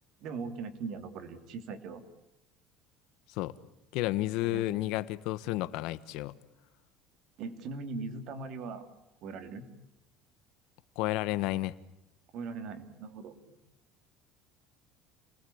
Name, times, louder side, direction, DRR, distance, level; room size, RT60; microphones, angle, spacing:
voice 1, 0.2-2.0 4.4-4.8 7.4-8.9 9.2-9.7 12.3-13.6, right 4 dB, 45° right, 9 dB, 2.9 m, -40 dB
voice 2, 3.9-6.3 11.0-11.7, left 17 dB, 65° left, 15 dB, 1.2 m, -31 dB
28.5 x 20.0 x 8.6 m, 0.89 s
cardioid pair, 170°, 0 cm